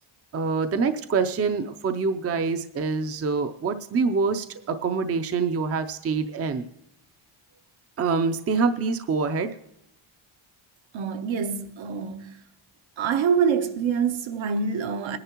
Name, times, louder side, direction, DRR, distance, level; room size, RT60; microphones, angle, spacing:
voice 1, 0.3-6.6 8.0-9.5, right 4 dB, 30° right, 0.5 m, -25 dB
voice 2, 10.9-12.4 13.0-15.2, right 6 dB, 65° right, 0.9 m, -25 dB
20.5 x 10.5 x 3.0 m
wide cardioid pair, 155°, 49 cm